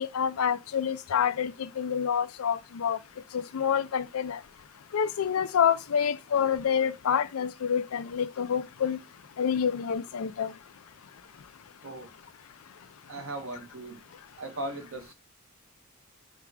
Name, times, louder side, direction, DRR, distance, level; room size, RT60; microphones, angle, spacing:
voice 1, 0.0-3.0 3.3-4.4 4.9-9.0 9.4-10.5, left 7 dB, 85° left, 0.4 m, -27 dB
voice 2, 13.1-14.0 14.4-15.1, right 2 dB, 70° right, 1.1 m, -38 dB
4.7 x 2.4 x 4.7 m
head